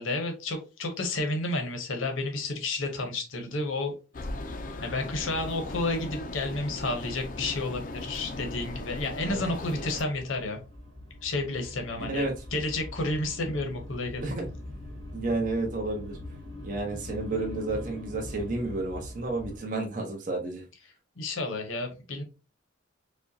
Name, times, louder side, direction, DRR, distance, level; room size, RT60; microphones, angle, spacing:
voice 1, 0.0-4.0 4.8-10.6 11.2-14.2 21.2-22.2, left 2 dB, 85° left, 0.9 m, -31 dB
sound 1, 4.1-10.0, left 2 dB, 45° left, 0.5 m, -38 dB
sound 2, 9.0-19.6, left 1 dB, 70° right, 1.8 m, -44 dB
voice 2, 15.1-16.2 16.6-20.6, right 2 dB, 40° right, 0.9 m, -31 dB
5.1 x 2.3 x 2.7 m
head